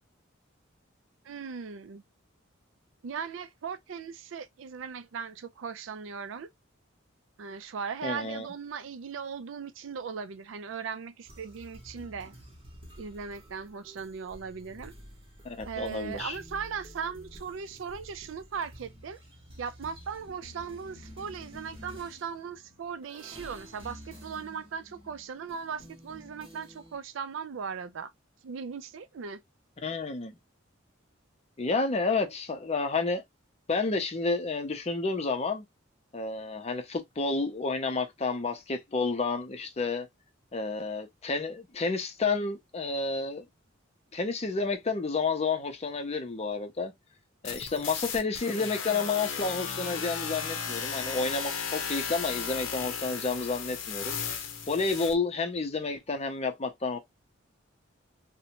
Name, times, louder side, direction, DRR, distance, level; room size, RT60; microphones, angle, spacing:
voice 1, 1.2-2.0 3.0-6.5 7.4-12.3 13.0-14.9 15.6-19.2 19.6-28.1 28.4-29.4, right 6 dB, 70° right, 0.4 m, -38 dB
voice 2, 8.0-8.5 15.4-16.4 29.8-30.3 31.6-33.2 33.7-35.6 36.1-40.1 40.5-43.4 44.1-46.9 47.4-54.4 54.7-57.0, left 4 dB, 30° left, 0.5 m, -30 dB
sound 1, 11.2-27.0, equal, 25° right, 0.9 m, -50 dB
sound 2, 47.4-55.1, left 6 dB, 80° left, 0.6 m, -35 dB
2.6 x 2.1 x 2.8 m
head